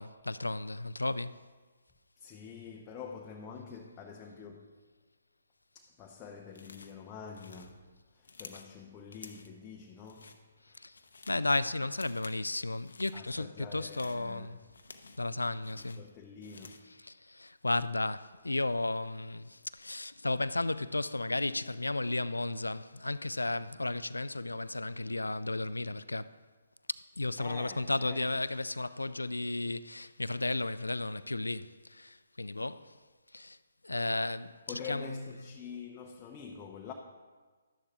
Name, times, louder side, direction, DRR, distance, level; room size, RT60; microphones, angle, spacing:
voice 1, 0.0-1.3 10.8-10.9 11.3-14.6 15.2-16.0 17.3-26.3 27.2-31.7 32.0-32.8 33.3-33.6 33.8-34.5 34.9-35.1, left 2 dB, 90° left, 0.3 m, -33 dB
voice 2, 2.2-4.8 5.7-10.4 10.7-10.8 13.1-14.7 15.7-17.0 27.4-28.4 34.7-36.9, left 6 dB, 20° left, 0.7 m, -46 dB
sound 1, 6.5-7.0 7.3-8.7 9.1-9.6 10.0-10.4 10.8-11.5 11.9-12.4 12.7-13.2 13.7-15.3 15.6-16.9, left 4 dB, 75° left, 0.7 m, -52 dB
13.0 x 10.5 x 2.4 m
figure-of-eight pair, 135°, 0 cm